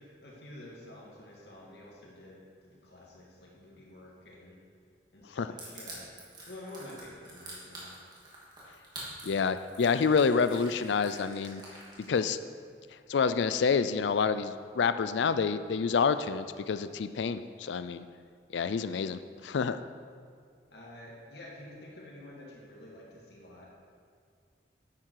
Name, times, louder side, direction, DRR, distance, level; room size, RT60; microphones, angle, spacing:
voice 1, 0.0-4.6 5.1-6.1 6.5-7.9 20.7-23.7, left 1 dB, 65° left, -4 dB, 2.2 m, -49 dB
Crushing, 5.6-12.3, right 2 dB, 25° right, 2.6 m, -47 dB
voice 2, 9.2-11.6 12.1-12.4 13.1-18.0 18.5-19.8, left 5 dB, 85° left, 12 dB, 0.4 m, -28 dB
11.5 x 9.6 x 4.7 m, 2.2 s
head